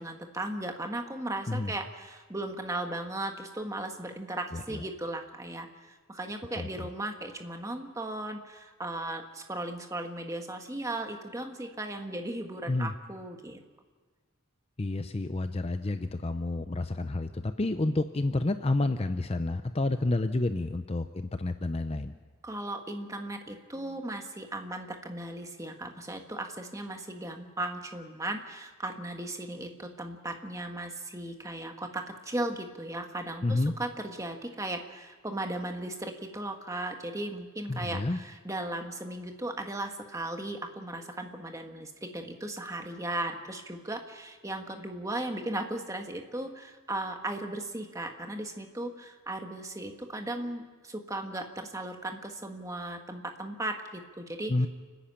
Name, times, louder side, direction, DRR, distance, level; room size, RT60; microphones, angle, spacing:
voice 1, 0.0-13.6 22.4-54.7, right 1 dB, 15° right, 4 dB, 1.4 m, -37 dB
voice 2, 4.5-4.8 6.6-6.9 12.7-12.9 14.8-22.1 33.4-33.7 37.7-38.2 54.5-54.7, left 2 dB, 30° left, 9 dB, 0.5 m, -29 dB
29.5 x 10.0 x 8.6 m, 1.4 s
head